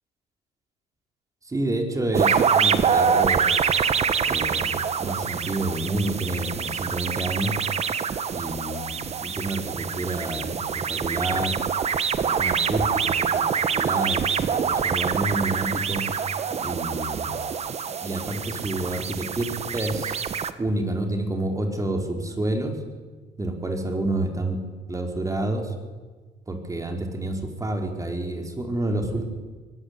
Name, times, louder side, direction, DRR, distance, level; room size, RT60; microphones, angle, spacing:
voice 1, 1.5-3.7 4.2-7.6 8.3-11.6 12.1-13.4 13.7-16.0 16.6-17.4 18.0-20.2 20.6-22.8 23.4-24.6 24.9-25.7 26.5-29.3, right 2 dB, 20° right, 4 dB, 5.0 m, -29 dB
sound 1, 2.1-20.5, right 7 dB, 40° right, 1.4 m, -25 dB
23.0 x 19.5 x 9.9 m, 1.4 s
cardioid pair, 110°, 17 cm